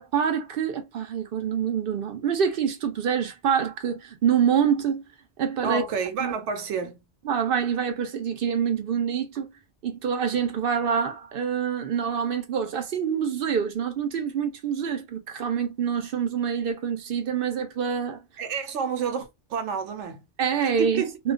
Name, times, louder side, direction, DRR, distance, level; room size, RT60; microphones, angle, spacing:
voice 1, 0.0-5.0 5.4-5.8 6.2-6.3 7.2-9.5 9.8-18.2 20.4-21.3, right 7 dB, 60° right, 0.7 m, -26 dB
voice 2, 5.6-7.0 18.4-20.2 20.8-21.2, right 6 dB, 80° right, 0.9 m, -29 dB
2.3 x 2.2 x 2.4 m
omnidirectional pair, 1.2 m